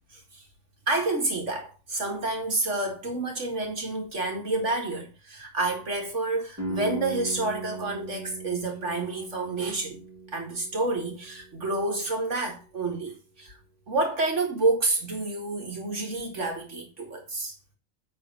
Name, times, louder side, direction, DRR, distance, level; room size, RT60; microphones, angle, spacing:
voice 1, 0.9-10.0 10.3-13.6 13.9-17.5, right 2 dB, 55° right, 2.1 m, -29 dB
sound 1, 6.6-12.3, right 1 dB, 10° right, 2.3 m, -39 dB
9.1 x 3.9 x 5.4 m
omnidirectional pair, 1.5 m